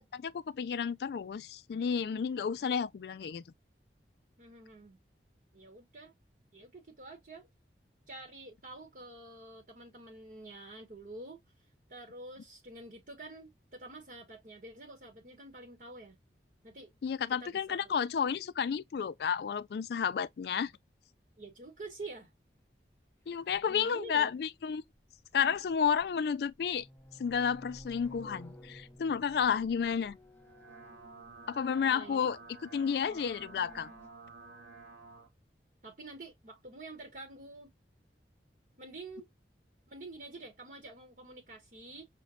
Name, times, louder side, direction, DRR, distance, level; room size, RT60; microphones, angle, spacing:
voice 1, 0.1-3.4 17.0-20.7 23.3-24.8 25.3-26.9 27.2-30.2 31.5-32.4 32.7-33.9, left 7 dB, 65° left, 0.3 m, -31 dB
voice 2, 4.4-5.0 5.5-6.1 6.5-7.5 8.1-11.4 11.9-16.2 16.6-16.9 17.4-18.1 21.4-22.3 23.7-24.3 31.9-32.3 35.8-37.7 38.8-39.3 39.9-42.1, right 2 dB, 50° right, 0.9 m, -48 dB
sound 1, 23.6-23.7 25.4-26.1 26.5-31.9 32.7-34.1, equal, 10° left, 0.6 m, -54 dB
sound 2, 30.3-35.3, right 4 dB, 85° right, 1.6 m, -52 dB
6.0 x 2.1 x 2.2 m
head